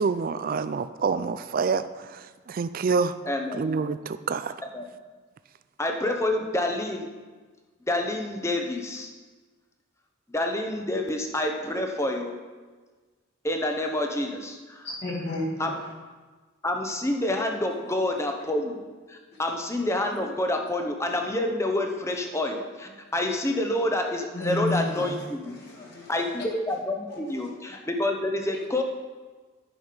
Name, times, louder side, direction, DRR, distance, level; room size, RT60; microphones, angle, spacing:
voice 1, 0.0-3.2 3.5-4.5, right 5 dB, 40° right, 12 dB, 0.3 m, -27 dB
voice 2, 3.2-3.6 4.7-4.8 5.8-7.1 7.9-9.1 10.3-12.4 13.4-14.9 15.6-15.8 16.6-18.8 19.1-25.5 26.1-28.8, left 1 dB, 15° left, 3 dB, 0.7 m, -28 dB
voice 3, 14.8-15.5 24.3-25.2 25.6-26.1 27.1-27.2, left 3 dB, 50° left, -5 dB, 1.9 m, -31 dB
10.0 x 6.2 x 5.1 m, 1.4 s
head